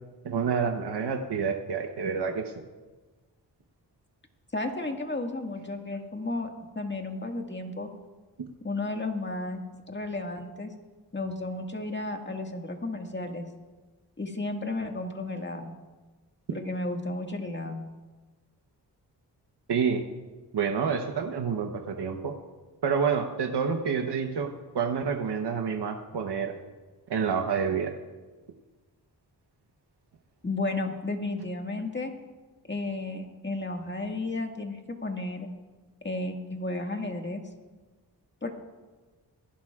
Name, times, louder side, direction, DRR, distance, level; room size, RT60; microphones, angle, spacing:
voice 1, 0.2-2.5 19.7-20.0 20.5-22.3 22.8-26.6 27.1-27.9, right 6 dB, 70° right, 4 dB, 1.1 m, -28 dB
voice 2, 4.5-7.9 8.6-10.7 11.1-13.5 14.2-15.7 16.5-17.8 30.4-32.1 32.7-35.5 36.0-37.4 38.4-38.5, left 2 dB, 25° left, 3 dB, 1.9 m, -33 dB
23.0 x 11.5 x 2.4 m, 1.3 s
cardioid pair, 50°, 41 cm